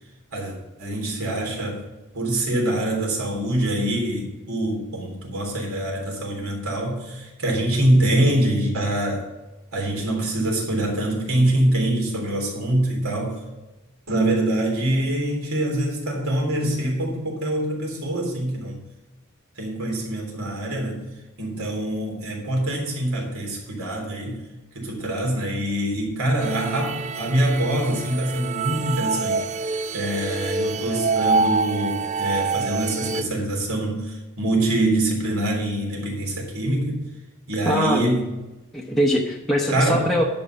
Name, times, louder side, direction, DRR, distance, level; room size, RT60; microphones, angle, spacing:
voice 1, 0.3-1.8 2.1-9.3 9.7-13.4 14.1-18.8 19.6-21.0 21.4-24.4 24.7-37.0 37.5-38.3 39.7-40.1, right 1 dB, 70° right, 0 dB, 3.4 m, -24 dB
sound 1, 26.4-33.2, right 4 dB, 30° right, 0.4 m, -26 dB
voice 2, 37.6-38.2 38.7-40.2, equal, ahead, -3 dB, 0.9 m, -22 dB
11.0 x 5.5 x 6.7 m, 1.1 s
head